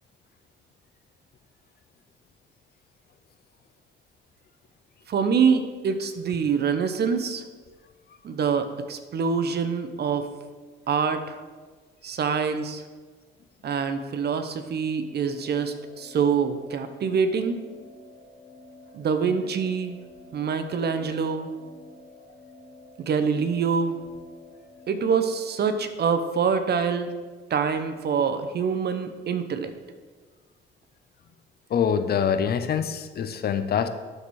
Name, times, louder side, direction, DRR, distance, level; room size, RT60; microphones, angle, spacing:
voice 1, 5.1-7.4 8.2-10.3 10.9-11.4 12.0-12.8 13.6-17.6 18.9-20.0 20.3-21.5 23.0-24.0 24.9-27.1 27.5-29.7, right 6 dB, 55° right, 9 dB, 0.8 m, -25 dB
sound 1, 15.3-25.5, left 2 dB, 90° left, 1.6 m, -50 dB
voice 2, 31.7-33.9, left 7 dB, 50° left, 10 dB, 0.6 m, -24 dB
11.5 x 4.2 x 4.7 m, 1.4 s
cardioid pair, 90°, 20 cm